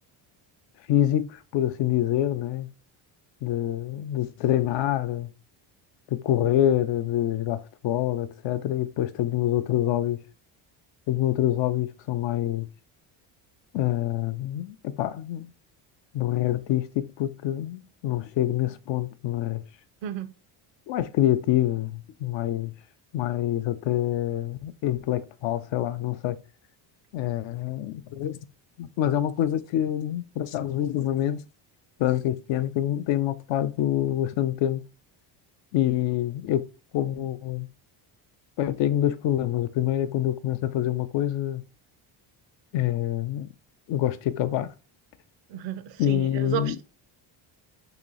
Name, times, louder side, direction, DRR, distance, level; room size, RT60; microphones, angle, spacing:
voice 1, 0.9-2.7 3.4-5.3 6.1-10.2 11.1-12.7 13.7-15.5 16.1-19.6 20.9-22.7 23.1-26.4 27.1-28.4 28.8-31.4 32.0-34.8 35.7-36.6 36.9-37.7 38.6-41.6 42.7-43.5 43.9-44.7 46.0-46.8, left 12 dB, 65° left, 0.5 m, -26 dB
voice 2, 20.0-20.3 45.5-46.8, right 11 dB, 65° right, 0.6 m, -32 dB
3.0 x 3.0 x 3.8 m
cardioid pair, 105°, 49 cm